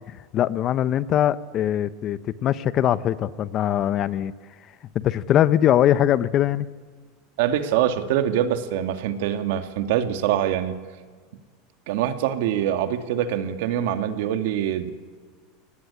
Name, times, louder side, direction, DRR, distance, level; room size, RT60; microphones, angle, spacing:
voice 1, 0.1-4.3 4.9-6.7, left 11 dB, 40° left, 16 dB, 0.8 m, -22 dB
voice 2, 7.4-10.8 11.9-14.9, right 10 dB, 70° right, 9 dB, 1.9 m, -24 dB
23.0 x 18.5 x 9.9 m, 1.5 s
supercardioid pair, 130°, 0 cm